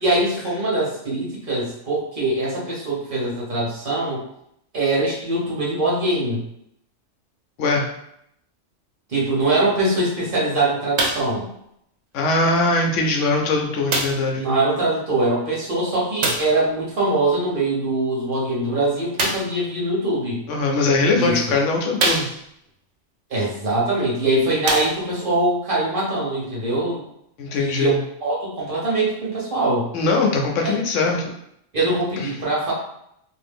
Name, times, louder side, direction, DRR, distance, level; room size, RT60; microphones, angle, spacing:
voice 1, 0.0-4.2 4.7-6.4 9.1-11.5 14.4-20.4 21.1-21.5 23.3-27.0 27.5-29.9 30.6-30.7 31.7-32.7, right 2 dB, 50° right, -6 dB, 1.1 m, -22 dB
voice 2, 7.6-7.9 12.1-14.5 20.5-22.2 27.4-28.0 29.9-31.3 32.2-32.3, left 3 dB, 90° left, 1 dB, 1.0 m, -21 dB
sound 1, 10.9-11.4 12.3-12.4 13.9-14.3 16.2-16.6 19.1-19.6 20.6-20.7 21.3-21.4 21.9-22.7 23.9-24.0 24.6-25.3 26.1-26.2, right 2 dB, 70° right, 0.9 m, -24 dB
2.6 x 2.5 x 3.4 m, 0.75 s
omnidirectional pair, 1.2 m